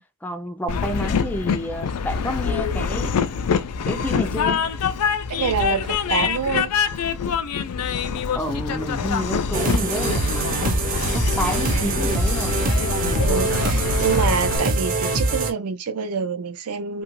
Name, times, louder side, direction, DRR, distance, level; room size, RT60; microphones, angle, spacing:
voice 1, 0.2-3.2 3.8-4.6 8.3-10.8 11.1-12.5 12.9-13.5, equal, 5° left, 0.4 m, -29 dB
Train, 0.7-14.6, left 6 dB, 90° left, 0.4 m, -25 dB
voice 2, 5.3-6.7 11.7-12.1 13.2-17.0, right 6 dB, 80° right, 0.6 m, -26 dB
sound 1, 9.5-15.5, right 3 dB, 40° right, 0.6 m, -24 dB
2.8 x 2.4 x 3.0 m
head